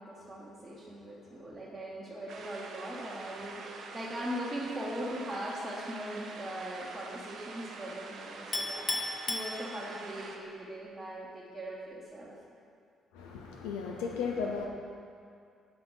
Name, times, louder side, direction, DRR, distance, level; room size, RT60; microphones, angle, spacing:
voice 1, 0.0-12.3, equal, 20° right, -7 dB, 1.0 m, -40 dB
sound 1, 2.3-10.4, right 4 dB, 60° right, 0.5 m, -45 dB
Chink clink, 8.5-10.2, left 2 dB, 40° left, 0.7 m, -35 dB
voice 2, 13.1-14.7, left 5 dB, 70° left, 1 dB, 0.4 m, -35 dB
8.6 x 4.1 x 3.2 m, 2.3 s
figure-of-eight pair, 45°, 0 cm